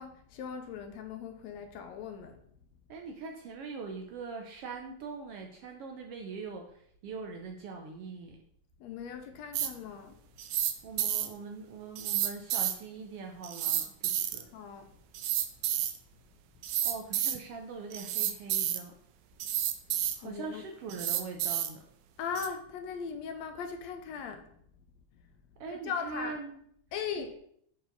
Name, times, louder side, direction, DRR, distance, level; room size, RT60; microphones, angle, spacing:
voice 1, 0.0-2.4 8.8-10.2 14.5-14.9 20.2-20.6 22.2-24.5 25.7-26.4 26.9-27.3, left 6 dB, 75° left, 1.8 m, -39 dB
voice 2, 2.9-8.4 10.8-14.5 16.8-18.9 20.2-21.8 25.6-26.6 27.2-27.3, right 4 dB, 75° right, 1.4 m, -42 dB
sound 1, 9.5-9.7 10.4-10.7 11.0-11.3 12.0-12.7 13.4-14.4 15.1-16.0 16.6-17.4 17.9-18.8 19.4-20.2 20.9-21.7 22.4-22.5, right 11 dB, 90° right, 2.1 m, -30 dB
9.3 x 4.6 x 3.9 m
omnidirectional pair, 3.3 m